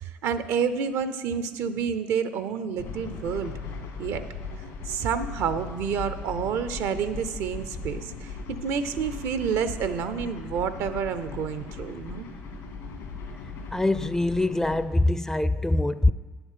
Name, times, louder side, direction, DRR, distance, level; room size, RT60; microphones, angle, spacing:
voice 1, 0.0-3.5 4.0-4.2 4.9-12.3, right 7 dB, 75° right, 0.6 m, -29 dB
sound 1, 2.8-14.9, left 4 dB, 75° left, 1.7 m, -38 dB
voice 2, 13.7-16.1, left 2 dB, 10° left, 0.4 m, -23 dB
9.6 x 7.0 x 5.6 m
supercardioid pair, 65°, 5 cm